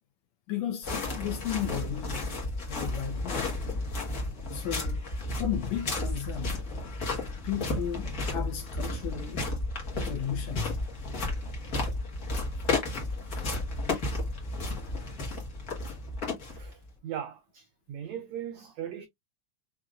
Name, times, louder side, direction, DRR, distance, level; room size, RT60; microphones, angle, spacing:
voice 1, 0.5-2.3 2.7-3.5 4.5-5.0 5.4-6.6 7.4-9.5 10.0-10.8 13.4-13.5, left 10 dB, 70° left, 1.8 m, -34 dB
sound 1, 0.8-16.9, left 2 dB, 40° left, 1.3 m, -33 dB
voice 2, 16.4-19.1, right 9 dB, 85° right, 1.5 m, -39 dB
6.0 x 2.7 x 2.4 m
omnidirectional pair, 3.9 m